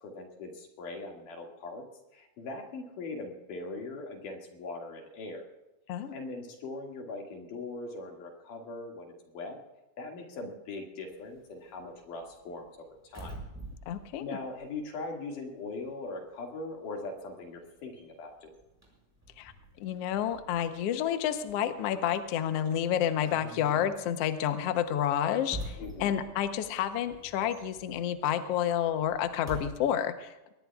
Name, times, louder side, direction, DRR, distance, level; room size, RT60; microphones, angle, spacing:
voice 1, 0.0-1.8 2.1-5.4 6.1-9.6 10.0-12.7 13.0-13.3 14.2-18.5 25.8-26.2, left 3 dB, 85° left, 1 dB, 3.8 m, -40 dB
sound 1, 11.1-15.5 15.8-29.7, right 1 dB, 5° right, 5.5 m, -47 dB
voice 2, 13.9-14.4 19.4-19.5 19.8-30.5, left 10 dB, 65° left, 8 dB, 1.6 m, -30 dB
23.5 x 19.0 x 2.4 m, 0.98 s
omnidirectional pair, 3.6 m